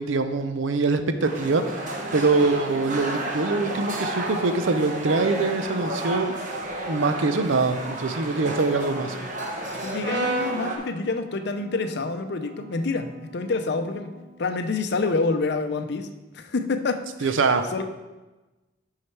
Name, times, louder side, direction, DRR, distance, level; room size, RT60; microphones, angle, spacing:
voice 1, 0.0-6.4 6.9-9.2 17.2-17.6, right 3 dB, 80° right, 9 dB, 0.6 m, -24 dB
sound 1, 1.2-10.8, right 1 dB, 40° right, 1.0 m, -32 dB
voice 2, 9.8-14.1 14.4-16.1 16.3-17.4 17.7-17.8, left 3 dB, 60° left, 8 dB, 0.5 m, -27 dB
Brass instrument, 10.0-14.3, right 2 dB, 60° right, 1.2 m, -35 dB
6.3 x 5.7 x 4.5 m, 1.1 s
head